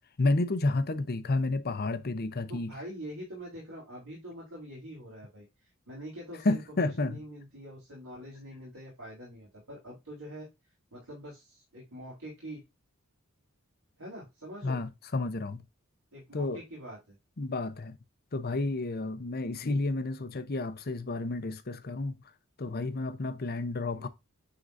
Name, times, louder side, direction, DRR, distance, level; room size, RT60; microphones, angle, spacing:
voice 1, 0.2-2.7 6.4-7.2 14.6-15.6 16.3-16.6 17.4-18.0 18.3-22.2 22.6-24.1, left 2 dB, 45° left, 0.8 m, -31 dB
voice 2, 2.5-10.5 10.9-12.6 14.0-14.8 16.1-17.2 23.9-24.1, equal, 80° right, 3.3 m, -44 dB
9.5 x 3.8 x 2.6 m
head